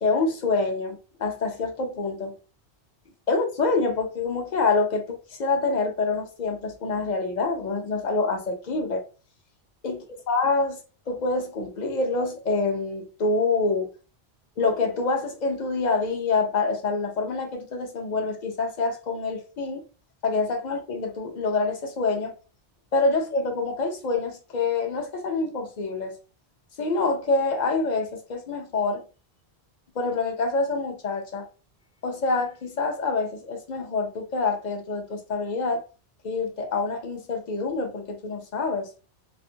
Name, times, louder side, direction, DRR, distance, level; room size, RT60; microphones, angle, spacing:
voice 1, 0.0-2.3 3.3-9.0 9.8-10.8 11.1-13.9 14.6-19.8 20.2-22.3 22.9-26.2 26.8-29.0 30.0-31.4 32.0-35.8 36.2-38.9, left 3 dB, 50° left, 0.6 m, -26 dB
2.5 x 2.4 x 2.7 m
omnidirectional pair, 1.2 m